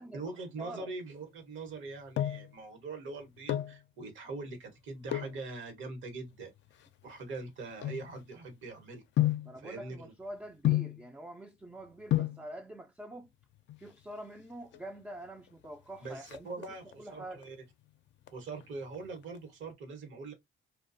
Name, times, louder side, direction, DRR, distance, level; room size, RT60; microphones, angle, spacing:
voice 1, 0.0-6.5 7.0-9.0 9.6-10.1 16.0-17.6 18.3-20.3, right 3 dB, 75° right, 1.0 m, -42 dB
voice 2, 0.6-0.9 9.4-13.3 13.8-16.5 17.0-17.4, right 1 dB, 10° right, 0.3 m, -45 dB
sound 1, 1.7-2.6 3.3-3.8 5.0-5.4 6.1-8.5 9.2-9.6 10.6-11.1 11.8-11.9 12.1-12.5 13.6-14.1 14.4-14.5 14.7-14.9 15.2-15.6 15.9-17.0 17.4-17.8 18.2-19.4 19.6-19.7, left 13 dB, 65° left, 0.4 m, -32 dB
2.3 x 2.2 x 2.5 m
cardioid pair, 90°, 20 cm